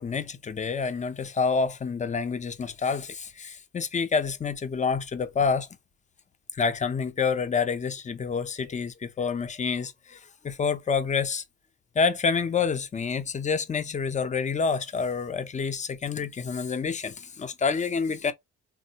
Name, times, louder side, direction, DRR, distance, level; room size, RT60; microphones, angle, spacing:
voice 1, 0.0-5.7 6.5-11.4 11.9-18.3, left 5 dB, 25° left, 0.5 m, -28 dB
3.4 x 2.0 x 2.7 m
cardioid pair, 90°, 30 cm